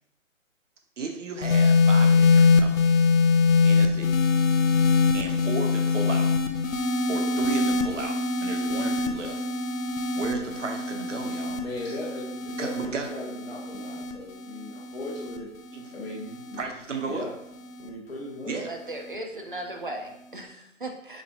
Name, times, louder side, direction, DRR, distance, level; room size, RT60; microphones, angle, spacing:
voice 1, 1.0-4.2 5.1-6.4 7.1-9.5 10.1-11.6 12.6-13.1 15.7-15.9 16.5-17.3 18.4-18.7, right 4 dB, 65° right, 4 dB, 0.8 m, -35 dB
sound 1, 1.4-17.9 18.8-19.1, left 4 dB, 90° left, 0.7 m, -24 dB
voice 2, 11.5-15.5 15.9-16.6 17.0-17.3 17.8-18.6, left 2 dB, 50° left, -4 dB, 0.8 m, -38 dB
voice 3, 18.7-21.2, right 2 dB, 40° right, 3 dB, 0.5 m, -37 dB
5.0 x 3.3 x 2.7 m, 0.79 s
hypercardioid pair, 180°, 39 cm